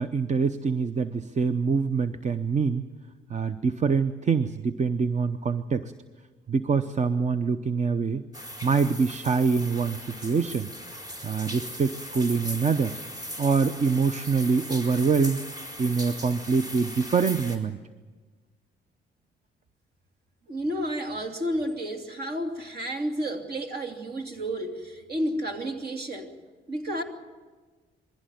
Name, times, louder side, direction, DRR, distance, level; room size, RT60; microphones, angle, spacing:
voice 1, 0.0-2.9 3.3-5.9 6.5-8.2 8.6-10.7 11.2-13.0 13.4-15.4 15.8-17.8, right 5 dB, 35° right, 12 dB, 0.8 m, -25 dB
sound 1, 8.3-17.6, equal, 20° right, 4.3 m, -39 dB
voice 2, 20.5-26.3 26.7-27.0, equal, 50° right, 4 dB, 2.9 m, -31 dB
22.0 x 16.0 x 9.2 m, 1.4 s
cardioid pair, 90°, 20 cm